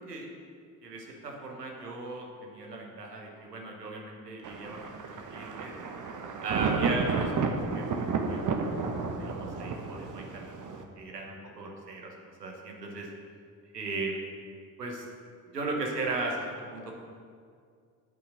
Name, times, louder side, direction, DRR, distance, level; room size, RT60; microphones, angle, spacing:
voice 1, 0.8-5.0 5.3-5.7 6.4-7.9 8.1-12.1 12.4-13.1 13.7-14.2 14.8-15.0 15.5-16.9, right 3 dB, 85° right, 0 dB, 1.1 m, -37 dB
Thunder, 4.4-10.8, right 4 dB, 40° right, 1.1 m, -32 dB
9.2 x 5.7 x 7.5 m, 2.2 s
figure-of-eight pair, 45°, 47 cm